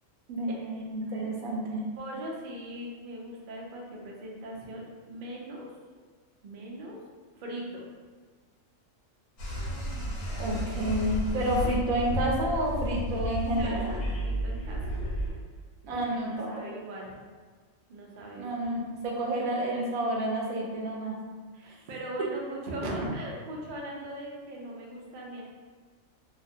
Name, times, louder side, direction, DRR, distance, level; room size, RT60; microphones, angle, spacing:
voice 1, 0.3-1.8 10.4-13.9 15.8-16.6 18.4-21.1 21.7-21.8, right 1 dB, 85° right, -2 dB, 1.0 m, -30 dB
voice 2, 2.0-5.7 6.4-7.0 7.3-7.8 13.2-14.9 15.9-17.1 17.9-18.5 21.5-25.4, right 1 dB, 65° right, -2 dB, 0.5 m, -39 dB
sound 1, 9.4-15.3, equal, 80° left, 1.1 m, -32 dB
2.4 x 2.1 x 2.6 m, 1.5 s
omnidirectional pair, 1.4 m